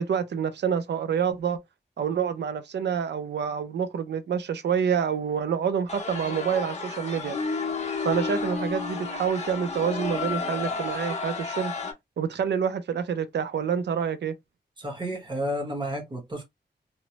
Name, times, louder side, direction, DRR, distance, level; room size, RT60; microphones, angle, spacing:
voice 1, 0.0-1.6 2.0-7.4 8.0-11.7 12.2-14.3, right 7 dB, 80° right, 0.4 m, -27 dB
sound 1, 5.9-11.9, left 4 dB, 40° left, 0.6 m, -31 dB
voice 2, 14.8-16.4, equal, 25° right, 1.0 m, -31 dB
3.0 x 2.0 x 2.8 m
wide cardioid pair, 180°, 17 cm